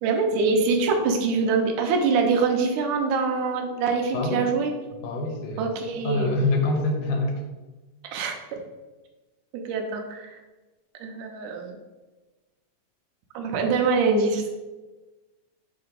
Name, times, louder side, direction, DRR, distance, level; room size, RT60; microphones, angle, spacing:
voice 1, 0.0-4.7 5.6-6.4 8.0-8.6 9.5-10.3 11.0-11.7 13.3-14.5, right 4 dB, 85° right, 3 dB, 2.2 m, -24 dB
voice 2, 4.9-5.7 6.0-7.4, left 2 dB, 85° left, 1 dB, 2.6 m, -25 dB
6.4 x 2.9 x 5.1 m, 1.2 s
omnidirectional pair, 3.7 m